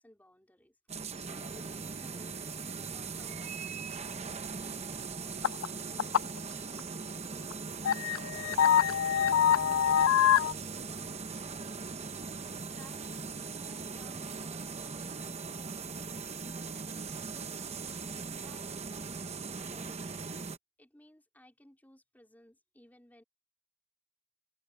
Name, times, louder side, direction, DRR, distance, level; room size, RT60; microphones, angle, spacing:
voice 1, 0.0-8.2 8.5-12.3 12.7-17.3 18.1-19.2 19.5-20.1 20.8-23.2, left 1 dB, 10° left, 4.4 m, -60 dB
sound 1, 0.9-20.6, right 5 dB, 30° right, 0.9 m, -40 dB
sound 2, 5.4-5.7 6.0-6.4 6.8-6.9 7.5-7.6 7.8-10.5, left 9 dB, 75° left, 0.4 m, -25 dB
head